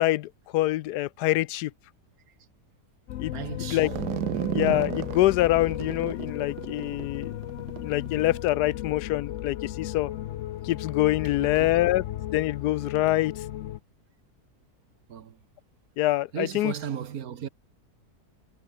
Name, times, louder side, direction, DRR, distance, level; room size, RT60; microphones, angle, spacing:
voice 1, 0.0-1.7 3.2-3.9 4.5-7.3 7.8-10.1 10.6-12.0 12.3-13.4 16.0-16.7, left 16 dB, 85° left, 1.1 m, -25 dB
sound 1, 3.1-13.8, left 12 dB, 65° left, 0.8 m, -35 dB
voice 2, 3.3-3.9 11.4-11.8 15.1-15.4 16.3-17.5, right 8 dB, 65° right, 1.6 m, -35 dB
sound 2, 3.8-8.5, right 13 dB, 85° right, 1.3 m, -34 dB
Drum, 4.7-7.2, left 7 dB, 45° left, 1.2 m, -44 dB
omnidirectional pair, 1.7 m